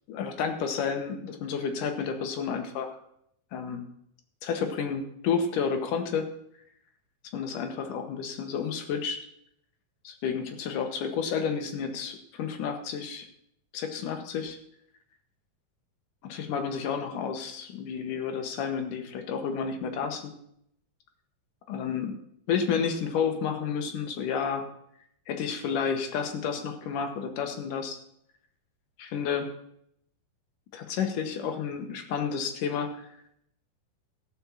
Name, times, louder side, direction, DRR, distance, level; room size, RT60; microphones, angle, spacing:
voice 1, 0.1-2.9 3.5-3.8 4.4-6.3 7.3-9.2 10.0-13.3 13.7-14.6 16.2-20.3 21.7-22.2 22.5-24.7 25.3-28.0 29.0-29.5 30.7-33.1, left 6 dB, 70° left, 6 dB, 2.4 m, -31 dB
15.0 x 5.3 x 7.0 m, 0.72 s
omnidirectional pair, 4.3 m